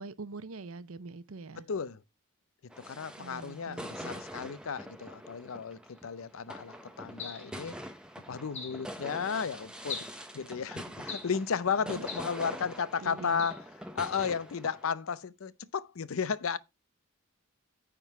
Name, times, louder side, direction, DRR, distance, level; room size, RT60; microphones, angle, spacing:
voice 1, 0.0-1.7 3.2-4.2 11.8-12.0 13.0-13.5, right 3 dB, 80° right, 0.7 m, -44 dB
voice 2, 1.6-2.0 2.8-7.8 8.3-10.0 10.3-13.6 13.9-16.6, left 6 dB, 75° left, 0.5 m, -34 dB
sound 1, 2.7-14.9, equal, 5° right, 0.9 m, -45 dB
sound 2, 7.2-7.6 8.5-8.8 9.9-10.2 11.1-11.4 12.1-12.4 13.4-13.6, left 6 dB, 30° left, 1.8 m, -41 dB
9.3 x 3.8 x 5.4 m
head